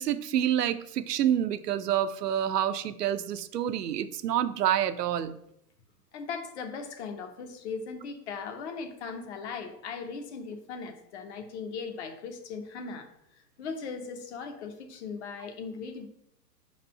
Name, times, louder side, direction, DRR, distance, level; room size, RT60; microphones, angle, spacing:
voice 1, 0.0-5.3, right 10 dB, 70° right, 10 dB, 0.7 m, -28 dB
voice 2, 6.1-13.1 13.6-16.1, left 5 dB, 40° left, 5 dB, 1.0 m, -38 dB
5.1 x 4.2 x 5.7 m, 0.76 s
hypercardioid pair, 135°, 49 cm